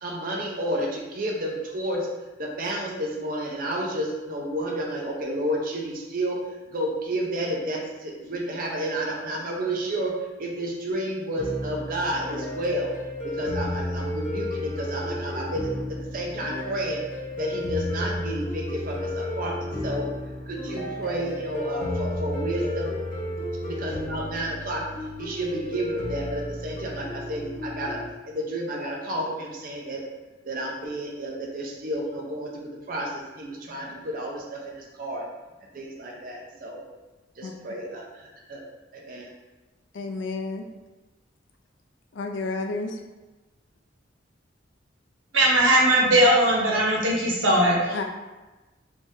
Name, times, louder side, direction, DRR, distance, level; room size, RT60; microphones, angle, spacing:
voice 1, 0.0-2.1 2.4-6.4 6.7-10.1 10.4-12.9 13.2-17.0 17.4-20.1 20.5-23.0 23.7-24.8 25.2-30.0 30.4-35.3 35.7-36.9 37.4-38.6 38.9-39.3, right 1 dB, 50° right, -1 dB, 0.6 m, -31 dB
sound 1, 11.4-28.1, left 1 dB, 55° left, 1.1 m, -32 dB
voice 2, 39.9-40.6 42.1-43.0 47.9-48.0, left 3 dB, 75° left, 4 dB, 0.4 m, -30 dB
voice 3, 45.3-48.0, right 1 dB, 90° right, -2 dB, 0.9 m, -19 dB
3.4 x 3.3 x 2.7 m, 1.1 s
head